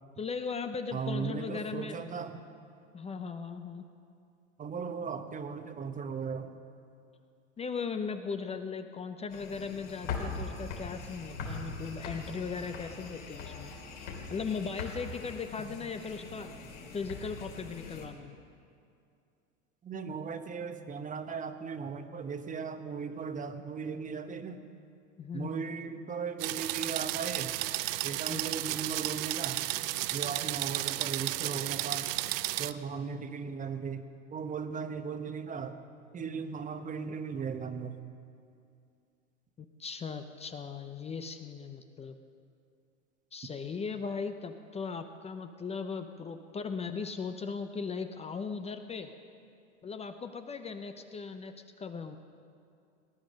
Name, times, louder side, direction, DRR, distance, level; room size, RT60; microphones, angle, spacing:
voice 1, 0.2-2.0 2.9-3.8 7.6-13.7 14.3-16.5 16.9-18.3 25.2-25.8 28.3-28.5 39.6-42.2 43.3-49.1 49.8-51.5 51.8-52.2, left 5 dB, 15° left, 8 dB, 0.6 m, -38 dB
voice 2, 0.9-2.4 4.6-6.5 19.8-24.6 25.3-27.6 28.0-29.6 30.1-32.1 32.6-34.0 34.3-35.8 36.1-38.0, right 6 dB, 20° right, 9 dB, 1.0 m, -37 dB
sound 1, 9.3-18.1, left 4 dB, 60° left, 3.5 m, -41 dB
sound 2, 26.4-32.7, right 18 dB, 50° right, 0.5 m, -33 dB
18.5 x 10.5 x 6.4 m, 2.4 s
hypercardioid pair, 105°, 39 cm